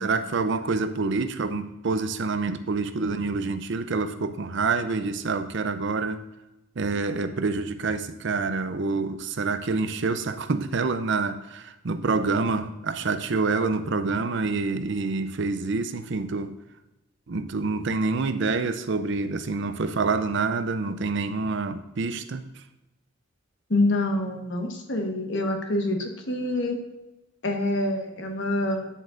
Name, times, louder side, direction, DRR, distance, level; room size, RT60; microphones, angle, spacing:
voice 1, 0.0-6.2 6.8-16.5 17.3-22.4, right 4 dB, 55° right, 10 dB, 0.5 m, -27 dB
voice 2, 23.7-26.8 27.4-28.9, left 1 dB, 55° left, 3 dB, 1.3 m, -26 dB
9.3 x 7.6 x 2.5 m, 0.99 s
head